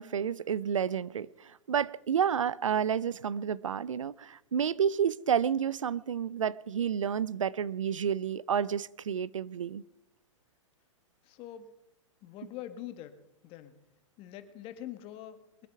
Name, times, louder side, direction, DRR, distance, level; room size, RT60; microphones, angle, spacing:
voice 1, 0.0-9.8, right 8 dB, 80° right, 0.5 m, -30 dB
voice 2, 11.2-11.7 12.2-13.8 14.2-15.7, left 12 dB, 35° left, 1.4 m, -44 dB
22.0 x 8.2 x 5.8 m
hypercardioid pair, 110°, 16 cm